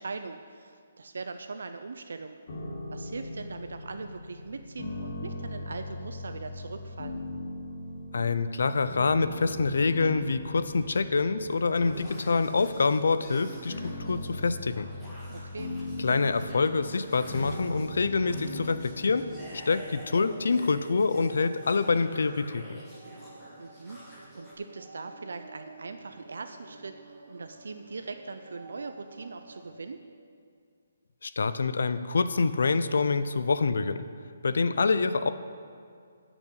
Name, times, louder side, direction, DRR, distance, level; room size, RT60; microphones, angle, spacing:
voice 1, 0.0-2.4 2.9-7.2 15.3-15.7 23.6-24.0 24.3-26.9 27.3-30.0, right 4 dB, 75° right, 8 dB, 0.6 m, -40 dB
sound 1, 2.5-21.4, left 1 dB, 40° left, 2.1 m, -40 dB
voice 2, 8.1-14.9 16.0-19.3 19.7-22.6 31.2-34.0 34.4-35.3, left 4 dB, 70° left, 12 dB, 0.6 m, -26 dB
sound 2, 11.7-24.5, equal, 5° left, 1.4 m, -49 dB
sound 3, 16.7-29.7, right 2 dB, 40° right, 1.6 m, -50 dB
10.0 x 6.1 x 8.4 m, 2.3 s
hypercardioid pair, 180°, 0 cm